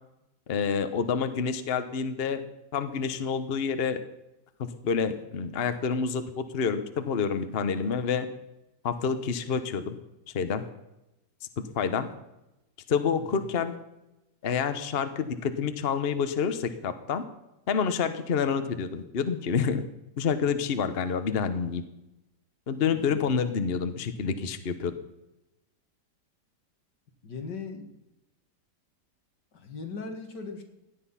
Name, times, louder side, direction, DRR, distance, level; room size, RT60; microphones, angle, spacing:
voice 1, 0.5-2.4 2.7-4.0 4.6-8.3 8.8-10.0 10.3-10.6 11.7-12.1 12.9-13.7 14.4-17.2 17.7-19.8 20.2-21.8 22.7-24.9, left 6 dB, 40° left, 10 dB, 1.1 m, -28 dB
voice 2, 22.9-23.3 27.2-27.9 29.5-30.6, left 4 dB, 85° left, 4 dB, 2.5 m, -39 dB
17.0 x 10.5 x 5.7 m, 0.93 s
omnidirectional pair, 1.8 m